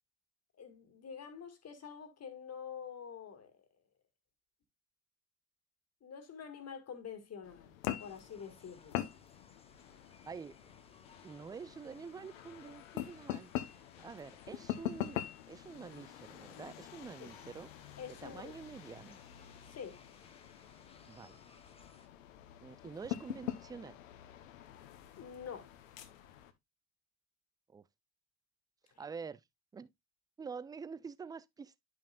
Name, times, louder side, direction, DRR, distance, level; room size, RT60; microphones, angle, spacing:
voice 1, 0.6-3.6 6.0-9.1 17.2-17.3 18.0-18.6 19.7-20.0 25.2-25.7 28.9-29.0, left 7 dB, 40° left, 2.0 m, -47 dB
sound 1, 7.4-26.5, left 12 dB, 75° left, 1.0 m, -45 dB
sound 2, 8.0-22.1, left 3 dB, 15° left, 1.1 m, -63 dB
voice 2, 10.2-10.6 11.2-13.5 14.0-15.2 15.5-17.7 18.2-19.2 21.1-21.4 22.6-24.0 27.7-27.8 29.0-29.4 29.7-29.9 30.4-31.8, right 5 dB, 10° right, 0.4 m, -47 dB
10.5 x 5.8 x 2.4 m
hypercardioid pair, 60°, 40 cm